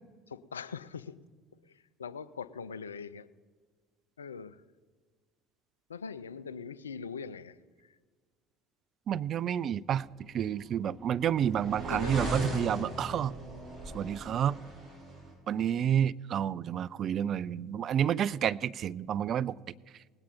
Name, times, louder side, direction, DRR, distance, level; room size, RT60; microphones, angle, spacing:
voice 1, 0.3-1.1 2.0-3.3 4.2-4.6 5.9-7.6 11.9-12.3, left 6 dB, 85° left, 0.4 m, -41 dB
voice 2, 9.1-10.1 10.3-13.3 13.9-14.6 15.5-19.6, right 9 dB, 45° right, 0.3 m, -29 dB
sound 1, 10.5-15.3, right 1 dB, 15° right, 4.7 m, -38 dB
19.0 x 8.8 x 4.3 m
figure-of-eight pair, 65°, 0 cm